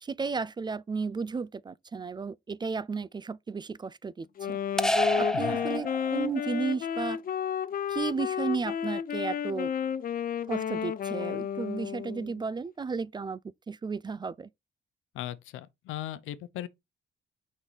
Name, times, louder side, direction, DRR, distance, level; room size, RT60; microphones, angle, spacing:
voice 1, 0.0-4.6 5.2-7.2 7.9-9.7 10.5-13.4 13.7-14.5, right 5 dB, 20° right, 0.3 m, -33 dB
Wind instrument woodwind instrument, 4.4-12.4, left 8 dB, 45° left, 0.6 m, -32 dB
sound 1, 4.8-6.4, left 1 dB, 5° left, 0.7 m, -28 dB
voice 2, 5.3-5.7 15.1-16.7, left 13 dB, 90° left, 0.7 m, -38 dB
6.1 x 5.4 x 3.3 m
cardioid pair, 90°, 20 cm